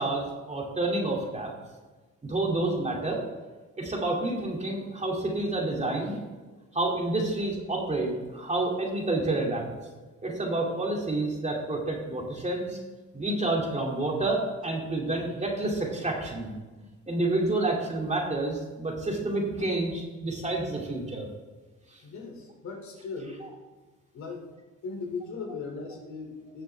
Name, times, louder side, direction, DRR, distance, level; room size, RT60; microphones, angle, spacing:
voice 1, 0.0-1.5 2.2-3.2 3.8-6.2 6.7-9.7 10.2-12.8 13.1-16.5 17.1-21.3 21.9-22.0, right 2 dB, 25° right, -1 dB, 2.6 m, -29 dB
voice 2, 22.0-23.4 24.1-24.5 24.8-26.6, left 4 dB, 65° left, 1 dB, 2.8 m, -38 dB
16.5 x 6.6 x 3.5 m, 1.2 s
cardioid pair, 90°, 30 cm